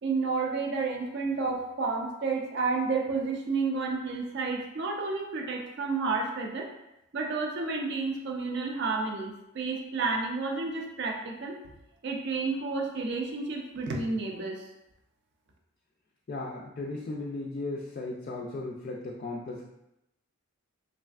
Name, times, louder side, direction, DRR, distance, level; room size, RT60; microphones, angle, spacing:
voice 1, 0.0-6.7 7.1-11.6 12.0-14.7, right 4 dB, 50° right, 1 dB, 0.4 m, -31 dB
voice 2, 16.3-19.6, left 2 dB, 40° left, -4 dB, 0.3 m, -36 dB
3.3 x 2.4 x 2.3 m, 0.87 s
head